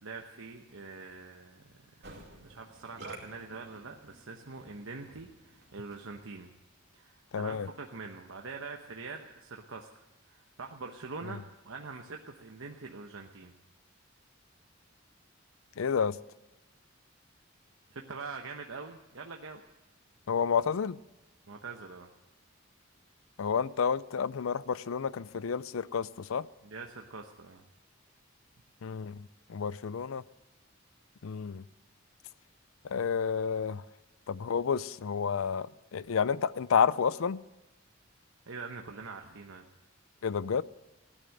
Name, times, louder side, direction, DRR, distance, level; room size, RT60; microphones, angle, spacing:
voice 1, 0.0-1.7 2.4-6.5 6.9-13.5 17.9-19.6 21.5-22.1 26.6-27.6 38.5-39.6, right 4 dB, 85° right, 1.0 m, -44 dB
Musical instrument, 2.0-6.3, right 2 dB, 55° right, 2.7 m, -51 dB
voice 2, 7.3-7.7 15.8-16.2 20.3-21.0 23.4-26.5 28.8-30.2 31.2-31.6 32.9-33.8 34.3-37.4 40.2-40.6, left 6 dB, 80° left, 0.5 m, -30 dB
16.0 x 10.0 x 7.8 m
head